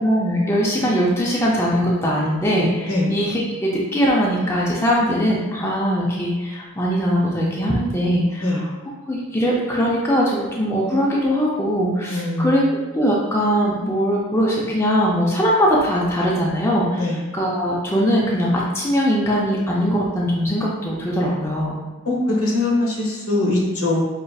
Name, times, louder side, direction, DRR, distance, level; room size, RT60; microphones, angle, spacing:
voice 1, 0.0-8.4 9.1-12.6 12.9-17.1 17.3-21.7, equal, 10° left, -4 dB, 0.4 m, -21 dB
voice 2, 12.1-12.8 17.0-17.2 22.0-24.0, left 2 dB, 75° left, -2 dB, 1.0 m, -22 dB
5.1 x 2.4 x 2.3 m, 1.2 s
head